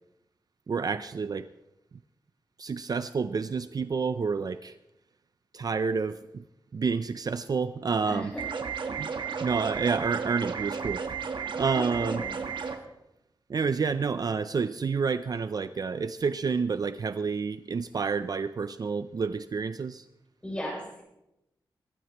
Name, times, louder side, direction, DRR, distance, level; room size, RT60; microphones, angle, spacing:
voice 1, 0.7-1.5 2.6-4.8 5.5-6.4 6.7-8.3 9.0-9.1 9.4-11.1 11.5-12.3 13.5-20.1, right 5 dB, 50° right, 12 dB, 0.4 m, -29 dB
voice 2, 8.0-8.4 11.7-12.4 20.4-21.0, equal, 10° left, -3 dB, 6.8 m, -36 dB
sound 1, 8.4-12.8, right 6 dB, 70° right, 1.3 m, -33 dB
23.5 x 12.5 x 3.0 m, 0.88 s
wide cardioid pair, 115°, 9 cm